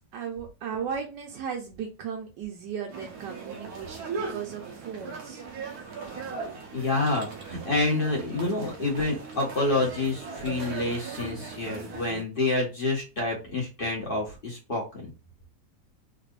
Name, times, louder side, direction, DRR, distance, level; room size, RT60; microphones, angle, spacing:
voice 1, 0.1-5.4, right 7 dB, 90° right, 0 dB, 1.4 m, -36 dB
sound 1, 2.9-12.2, right 5 dB, 65° right, 1.3 m, -38 dB
voice 2, 6.7-15.1, left 2 dB, 35° left, -2 dB, 1.5 m, -28 dB
3.8 x 3.2 x 2.5 m, 0.30 s
omnidirectional pair, 1.8 m